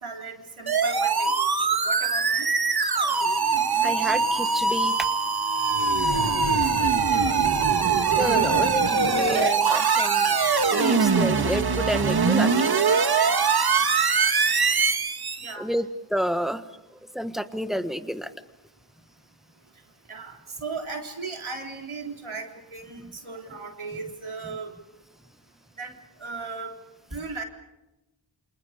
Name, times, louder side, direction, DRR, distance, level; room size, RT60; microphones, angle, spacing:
voice 1, 0.0-2.5 6.4-7.4 15.4-15.7 20.1-24.7 25.8-25.9 26.2-26.7 27.1-27.4, right 4 dB, 85° right, 2 dB, 3.8 m, -37 dB
sound 1, 0.7-15.5, right 5 dB, 50° right, 1.6 m, -22 dB
voice 2, 3.8-5.1 8.2-10.3 10.7-12.5 15.6-16.6 17.1-18.3 23.0-23.1, equal, ahead, 9 dB, 1.4 m, -29 dB
28.5 x 27.0 x 5.1 m, 0.96 s
wide cardioid pair, 90°, 47 cm